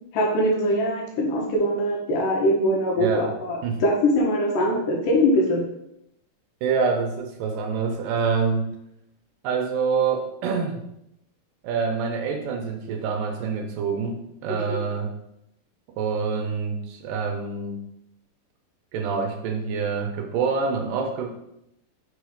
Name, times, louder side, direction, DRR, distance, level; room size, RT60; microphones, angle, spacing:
voice 1, 0.1-5.6 14.7-14.8, equal, 70° left, -1 dB, 2.7 m, -22 dB
voice 2, 3.0-3.3 3.6-3.8 6.6-8.7 9.4-10.8 11.6-15.1 16.0-17.8 18.9-21.3, right 5 dB, 75° right, 4 dB, 2.2 m, -26 dB
5.6 x 4.2 x 4.9 m, 0.79 s
omnidirectional pair, 4.1 m